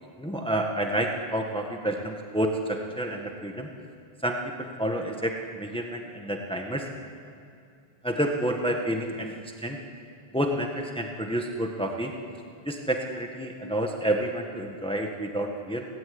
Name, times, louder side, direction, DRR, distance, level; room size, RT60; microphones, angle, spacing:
voice 1, 0.2-3.7 4.2-6.9 8.0-9.8 10.3-12.1 12.6-15.9, right 1 dB, 5° left, 2 dB, 1.5 m, -29 dB
23.5 x 17.0 x 9.6 m, 2.5 s
omnidirectional pair, 1.1 m